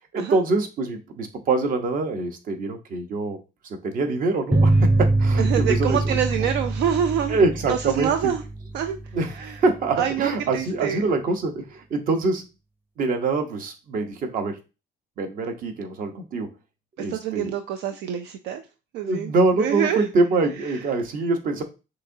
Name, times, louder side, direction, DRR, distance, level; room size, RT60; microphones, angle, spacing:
voice 1, 0.1-3.4 3.8-6.2 7.3-8.3 9.1-12.5 13.0-14.6 15.2-16.5 17.0-17.5 19.0-21.6, right 3 dB, 55° right, 1.0 m, -24 dB
sound 1, 4.5-9.6, right 2 dB, 10° right, 0.7 m, -23 dB
voice 2, 5.4-7.4 7.7-8.4 8.7-9.0 9.4-9.6 10.0-11.0 17.1-18.6 18.9-19.3 19.6-20.1, right 9 dB, 85° right, 0.5 m, -26 dB
6.3 x 2.9 x 2.7 m
cardioid pair, 110°, 17 cm